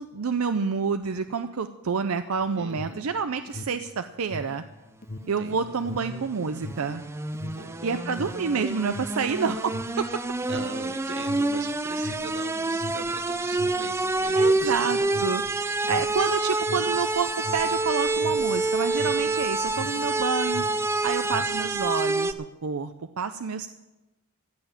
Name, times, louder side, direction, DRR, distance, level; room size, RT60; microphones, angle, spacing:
voice 1, 0.0-4.6 5.3-7.1 7.8-10.1 12.0-12.2 14.3-20.6 21.0-22.3 22.6-22.9 23.2-23.7, right 5 dB, 75° right, 9 dB, 0.5 m, -28 dB
Alarm, 2.6-20.2 20.4-21.7, left 2 dB, 35° left, 0.6 m, -41 dB
voice 2, 2.6-3.0 5.1-5.6 7.5-8.2 9.1-9.5 10.5-15.2 15.5-15.7 19.2-19.6, right 4 dB, 55° right, 10 dB, 1.0 m, -41 dB
sound 1, 5.6-22.3, right 2 dB, 10° right, 0.3 m, -27 dB
15.5 x 7.1 x 8.8 m, 1.1 s
head